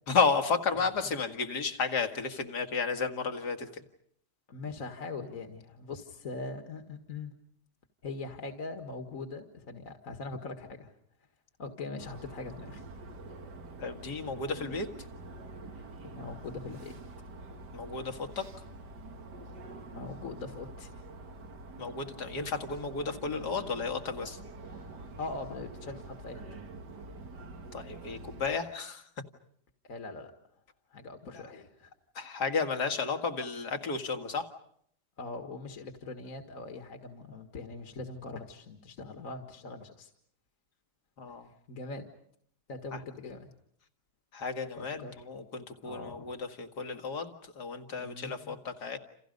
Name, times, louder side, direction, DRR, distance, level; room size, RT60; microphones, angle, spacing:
voice 1, 0.1-3.7 13.8-14.9 17.7-18.5 21.8-24.4 27.7-29.0 31.3-31.4 32.2-34.5 41.2-41.5 42.9-43.0 44.3-49.0, left 5 dB, 70° left, 7 dB, 2.5 m, -32 dB
voice 2, 4.5-7.3 8.0-10.9 11.6-12.8 16.0-17.0 19.9-21.0 25.2-26.4 29.9-30.3 30.9-31.9 35.2-40.1 41.7-42.1 42.7-43.5 44.8-45.1 45.8-46.2 48.0-48.6, left 3 dB, 55° left, 5 dB, 2.1 m, -41 dB
sound 1, 12.0-28.6, right 2 dB, 80° right, 2.4 m, -46 dB
29.0 x 29.0 x 5.3 m, 0.68 s
omnidirectional pair, 1.8 m